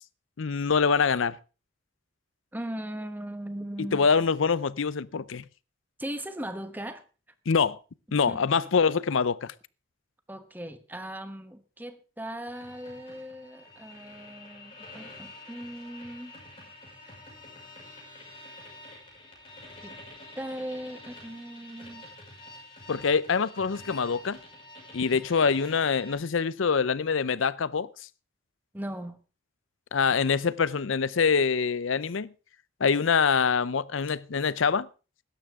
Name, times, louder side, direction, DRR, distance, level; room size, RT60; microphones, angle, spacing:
voice 1, 0.4-1.4 3.8-5.4 7.5-7.8 8.1-9.5 22.9-24.4 24.9-27.9 29.9-32.3 32.8-34.9, left 5 dB, 75° left, 0.6 m, -25 dB
voice 2, 2.5-4.1 6.0-7.0 8.3-8.4 10.3-16.3 19.8-20.0 20.4-22.0 28.7-29.2, right 1 dB, 10° right, 1.1 m, -38 dB
sound 1, 12.5-26.1, left 2 dB, 25° left, 5.9 m, -48 dB
16.5 x 12.5 x 3.6 m
head